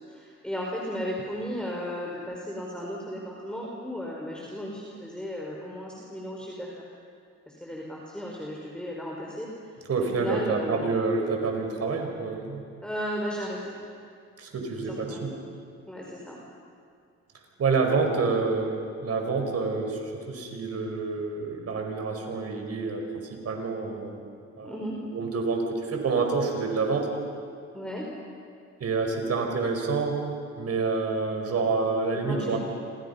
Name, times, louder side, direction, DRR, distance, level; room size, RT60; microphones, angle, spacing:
voice 1, 0.0-6.8 7.5-9.7 10.2-10.9 12.8-13.7 15.1-15.2 15.9-16.4 24.6-25.0 27.7-28.1 32.3-32.6, equal, 5° left, -3 dB, 4.5 m, -35 dB
voice 2, 9.9-12.6 14.4-15.3 17.6-18.7 19.0-24.2 24.6-24.8 25.1-27.1 28.8-30.2 30.6-32.6, right 4 dB, 55° right, 3 dB, 5.3 m, -28 dB
29.5 x 26.5 x 5.7 m, 2.3 s
cardioid pair, 90°, 30 cm